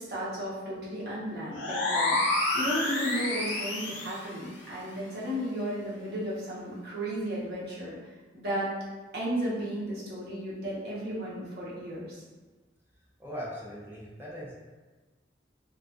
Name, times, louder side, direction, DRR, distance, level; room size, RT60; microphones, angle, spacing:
voice 1, 0.0-8.0 8.3-8.7 9.1-12.2, equal, 55° right, -7 dB, 0.7 m, -34 dB
sound 1, 1.5-4.2, left 2 dB, 80° left, 0.5 m, -29 dB
voice 2, 13.2-14.5, equal, 10° right, -6 dB, 0.5 m, -39 dB
2.3 x 2.2 x 2.4 m, 1.3 s
head